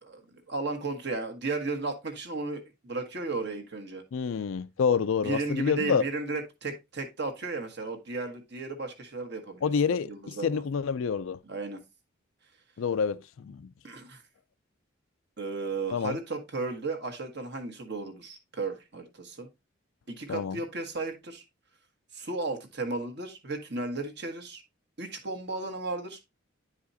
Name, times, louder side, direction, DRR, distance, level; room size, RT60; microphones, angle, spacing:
voice 1, 0.0-4.0 5.2-9.7 10.1-10.6 11.4-11.8 13.8-14.2 15.4-19.5 20.1-21.4 22.1-24.6 25.0-26.2, right 3 dB, 55° right, 1.4 m, -34 dB
voice 2, 4.1-6.0 9.6-11.4 12.8-13.7 15.9-16.2 20.3-20.6, left 6 dB, 75° left, 0.4 m, -28 dB
10.0 x 4.9 x 2.7 m
head